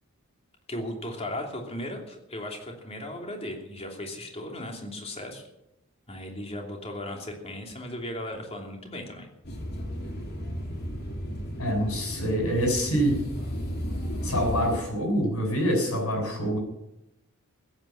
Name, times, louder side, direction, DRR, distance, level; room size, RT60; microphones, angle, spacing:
voice 1, 0.7-5.4 6.1-9.3, left 1 dB, 30° left, 2 dB, 3.0 m, -36 dB
sound 1, 9.4-14.8, equal, 50° left, 3.1 m, -34 dB
voice 2, 11.6-13.2 14.2-16.6, equal, 80° left, 2 dB, 7.0 m, -26 dB
16.0 x 9.0 x 8.6 m, 0.87 s
head